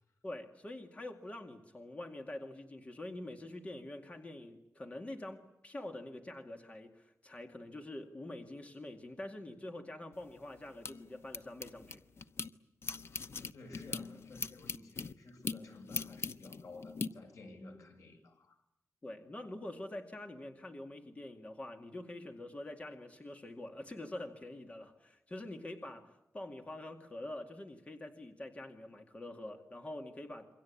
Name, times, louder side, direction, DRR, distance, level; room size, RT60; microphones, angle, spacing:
voice 1, 0.2-12.0 19.0-30.5, left 1 dB, 25° left, 4 dB, 2.2 m, -45 dB
sound 1, 10.1-12.5 12.8-17.1, left 4 dB, 55° left, 1.0 m, -41 dB
voice 2, 13.4-18.6, left 2 dB, 80° left, 4 dB, 6.8 m, -53 dB
28.0 x 24.5 x 8.5 m, 0.82 s
wide cardioid pair, 160°, 5 cm